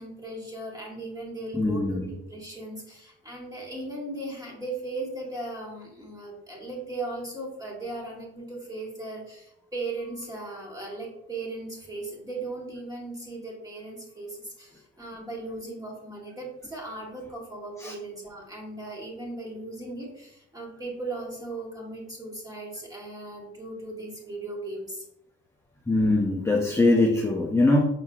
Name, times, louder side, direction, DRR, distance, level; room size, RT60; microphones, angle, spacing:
voice 1, 0.0-25.0, right 2 dB, 10° right, -3 dB, 1.7 m, -37 dB
voice 2, 1.5-2.1 17.8-17.9 25.9-27.8, left 2 dB, 10° left, -2 dB, 0.6 m, -22 dB
5.7 x 3.9 x 2.3 m, 0.81 s
cardioid pair, 90°, 30 cm